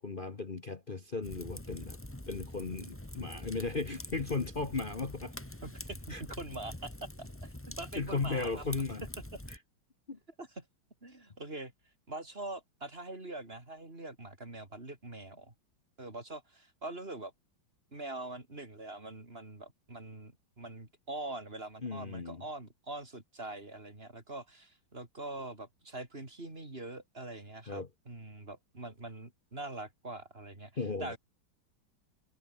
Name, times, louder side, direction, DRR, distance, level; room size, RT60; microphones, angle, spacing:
voice 1, 0.0-2.0 2.3-5.3 6.1-6.2 8.0-9.1 9.5-9.6 10.1-10.2 21.8-22.4 27.7-27.9 30.8-31.2, left 4 dB, 30° left, 1.1 m, -36 dB
Fire, 1.2-9.6, left 1 dB, 5° left, 1.8 m, -45 dB
voice 2, 5.6-8.6 9.3-9.4 10.4-10.7 11.0-11.7 12.1-15.5 16.0-17.3 17.9-31.2, right 2 dB, 25° right, 4.5 m, -44 dB
omnidirectional pair, 2.2 m